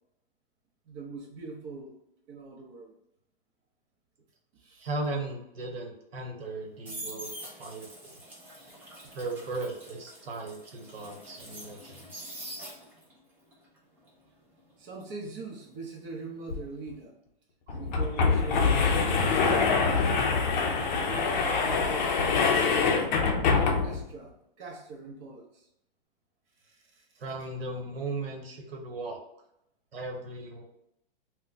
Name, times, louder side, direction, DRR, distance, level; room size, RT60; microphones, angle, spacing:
voice 1, 0.9-1.9 2.3-2.9 4.6-4.9 9.0-9.1 14.8-17.1 17.7-20.1 21.1-22.2 23.5-24.3 24.6-25.5 26.6-26.8, right 3 dB, 35° right, 0 dB, 0.7 m, -41 dB
voice 2, 4.8-7.3 7.6-8.2 9.1-12.4 27.2-29.2 29.9-30.6, right 2 dB, 85° right, 1 dB, 0.9 m, -37 dB
sound 1, 6.4-13.2 13.5-16.4 16.7-17.0, right 1 dB, 5° right, 0.3 m, -45 dB
sound 2, 16.5-16.6 16.9-17.0 17.7-24.1, left 4 dB, 50° left, 0.5 m, -25 dB
2.2 x 2.2 x 3.9 m, 0.81 s
hypercardioid pair, 140°, 29 cm